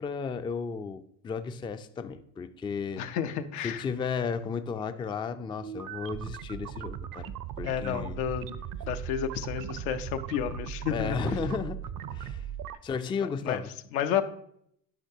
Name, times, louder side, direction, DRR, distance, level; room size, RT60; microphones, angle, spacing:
voice 1, 0.0-3.1 3.6-7.3 7.6-8.2 10.9-11.8 12.1-12.4 12.8-13.7, left 5 dB, 15° left, 11 dB, 0.3 m, -34 dB
voice 2, 3.0-3.8 7.6-8.5 8.9-11.2 13.4-13.6 13.9-14.2, left 9 dB, 85° left, 8 dB, 0.7 m, -31 dB
sound 1, 5.6-12.8, right 9 dB, 55° right, 0.6 m, -38 dB
10.0 x 5.8 x 2.7 m, 0.69 s
supercardioid pair, 80°, 41 cm